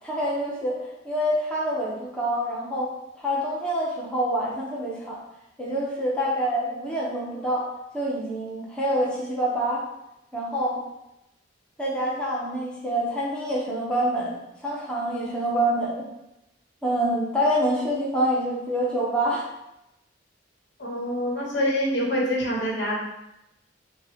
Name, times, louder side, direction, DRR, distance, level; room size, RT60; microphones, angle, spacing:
voice 1, 0.0-2.9 3.2-5.2 5.6-7.7 7.9-9.8 10.3-10.8 11.8-16.1 16.8-19.5, equal, 5° left, -6 dB, 0.8 m, -26 dB
voice 2, 20.8-23.0, equal, 65° left, -4 dB, 1.2 m, -26 dB
5.4 x 2.3 x 3.6 m, 0.89 s
head